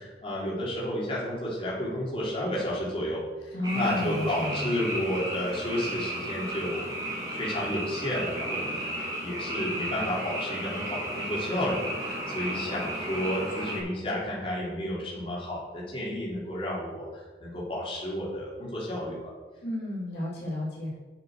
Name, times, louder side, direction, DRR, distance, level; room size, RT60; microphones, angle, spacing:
voice 1, 0.0-6.9 7.3-19.2, left 1 dB, 30° left, -7 dB, 3.4 m, -32 dB
voice 2, 3.5-4.7 19.6-20.9, left 1 dB, 70° left, -6 dB, 3.2 m, -32 dB
Frog, 3.6-13.8, right 1 dB, 20° right, 2.5 m, -34 dB
9.5 x 6.6 x 6.5 m, 1.3 s
head